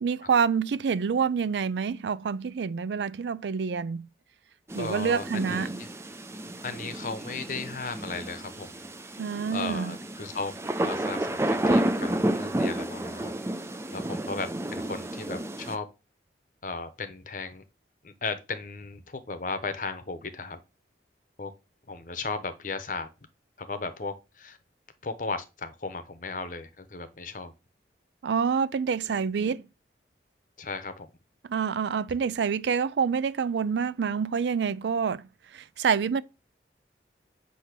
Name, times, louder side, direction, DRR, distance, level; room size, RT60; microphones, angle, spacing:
voice 1, 0.0-4.1 4.7-5.8 9.2-10.0 28.2-29.6 31.5-36.2, right 6 dB, 80° right, 0.4 m, -27 dB
sound 1, 4.7-15.8, right 1 dB, 15° right, 0.4 m, -31 dB
voice 2, 4.8-5.9 6.6-8.8 9.5-10.5 10.8-13.3 13.9-15.9 16.6-17.6 18.0-20.6 21.4-21.5 21.9-23.1 23.6-24.6 25.0-27.5 29.1-29.2 30.6-31.1, left 4 dB, 45° left, 0.8 m, -36 dB
8.2 x 2.8 x 6.0 m
head